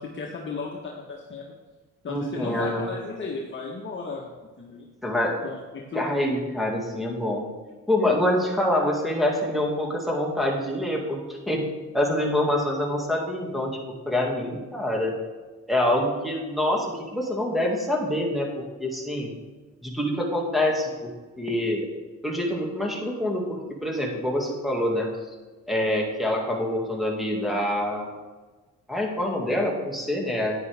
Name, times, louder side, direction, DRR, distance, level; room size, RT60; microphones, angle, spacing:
voice 1, 0.0-1.5 2.0-4.3 4.6-4.9 5.4-6.2, left 4 dB, 40° left, -2 dB, 1.4 m, -35 dB
voice 2, 2.1-2.8 5.0-5.3 5.9-7.5 7.9-11.7 11.9-13.8 14.1-15.1 15.7-18.5 18.8-19.3 19.8-21.9 22.2-25.1 25.7-28.1 28.9-30.5, left 1 dB, ahead, -1 dB, 2.1 m, -26 dB
9.6 x 9.6 x 3.5 m, 1.3 s
cardioid pair, 90°, 30 cm